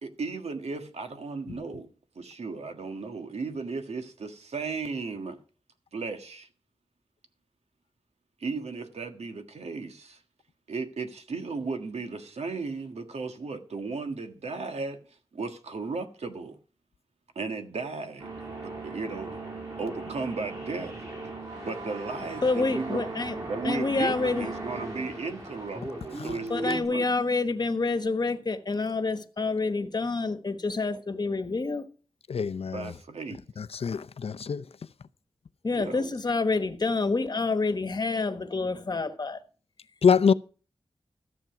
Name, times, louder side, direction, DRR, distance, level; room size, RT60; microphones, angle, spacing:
voice 1, 0.0-5.4 5.9-6.5 8.4-10.2 10.7-15.0 15.3-16.6 17.3-19.4 19.8-21.0 21.6-23.0 23.5-27.1 32.7-33.4 35.7-36.1, right 4 dB, 85° right, 1.6 m, -35 dB
sound 1, 18.2-26.8, right 2 dB, 35° right, 6.6 m, -37 dB
voice 2, 22.4-23.4 23.6-24.5 26.5-31.9 35.6-39.4, left 3 dB, 40° left, 1.2 m, -28 dB
voice 3, 32.3-32.9 33.6-34.6 40.0-40.3, left 6 dB, 70° left, 0.6 m, -24 dB
14.0 x 7.3 x 5.8 m
wide cardioid pair, 105°, 11 cm